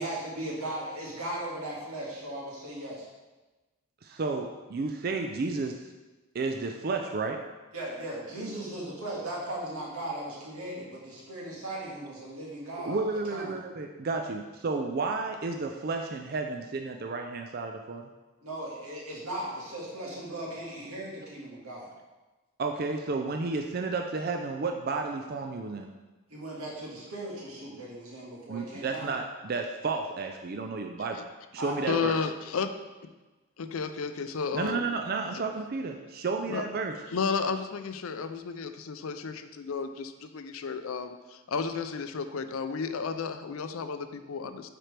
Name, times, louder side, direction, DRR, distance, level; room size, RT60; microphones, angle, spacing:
voice 1, 0.0-3.1 7.7-13.0 13.3-13.5 18.4-21.9 26.3-29.1 31.6-32.0, right 1 dB, 85° right, -4 dB, 1.9 m, -37 dB
voice 2, 4.0-5.9 6.3-7.4 12.8-18.0 22.6-25.9 28.5-31.3 31.5-32.2 34.5-35.9 36.2-36.9, right 4 dB, 45° right, 3 dB, 0.4 m, -32 dB
voice 3, 31.8-32.7 33.6-34.9 36.5-36.6 37.1-44.7, left 5 dB, 75° left, 9 dB, 0.5 m, -33 dB
8.8 x 4.5 x 3.3 m, 1.2 s
head